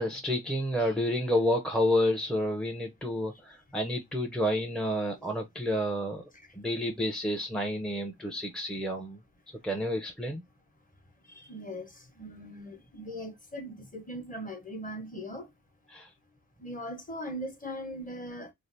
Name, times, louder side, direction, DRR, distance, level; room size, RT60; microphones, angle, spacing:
voice 1, 0.0-6.2 6.6-9.2 9.6-10.4 15.9-16.1, left 1 dB, ahead, 0.5 m, -30 dB
voice 2, 11.3-15.5 16.6-18.5, equal, 25° left, 1.0 m, -40 dB
3.2 x 2.4 x 2.6 m
wide cardioid pair, 85°, 33 cm